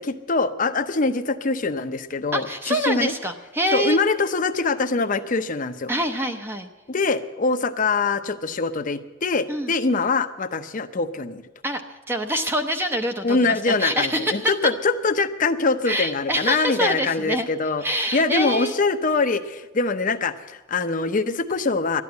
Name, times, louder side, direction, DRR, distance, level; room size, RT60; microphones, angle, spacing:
voice 1, 0.0-3.1 3.7-5.9 6.9-11.4 13.2-17.8 18.1-22.0, left 3 dB, 40° left, 9 dB, 0.7 m, -23 dB
voice 2, 2.3-4.0 5.9-6.7 9.5-9.7 11.6-14.5 15.8-17.5 17.8-18.7, equal, 10° right, 5 dB, 0.7 m, -25 dB
12.5 x 9.7 x 9.5 m, 1.2 s
head